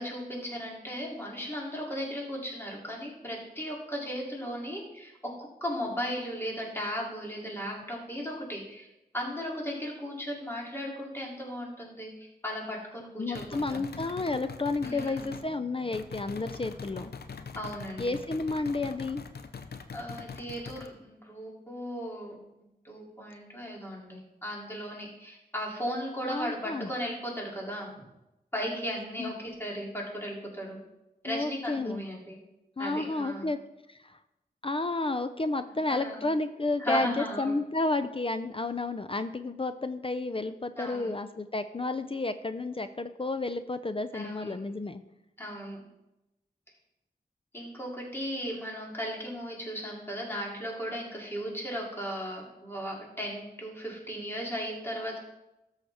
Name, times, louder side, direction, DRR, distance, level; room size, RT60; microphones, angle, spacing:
voice 1, 0.0-5.1 5.4-8.9 9.1-13.8 14.8-15.3 17.5-18.2 19.9-22.4 22.8-28.0 28.5-30.8 31.2-32.4 32.8-33.5 35.9-36.2 36.8-37.5 40.8-41.2 44.1-44.6 45.4-45.8 47.5-55.2, equal, 15° left, -3 dB, 2.9 m, -36 dB
voice 2, 13.2-17.1 18.0-19.2 26.2-26.9 29.2-29.3 31.3-32.0 32.8-33.6 33.9-34.2 34.6-45.0, left 2 dB, 35° left, 11 dB, 0.5 m, -31 dB
sound 1, 13.3-15.5 15.9-20.9, left 5 dB, 75° left, 0.6 m, -43 dB
13.0 x 6.3 x 3.5 m, 0.92 s
wide cardioid pair, 60°, 16 cm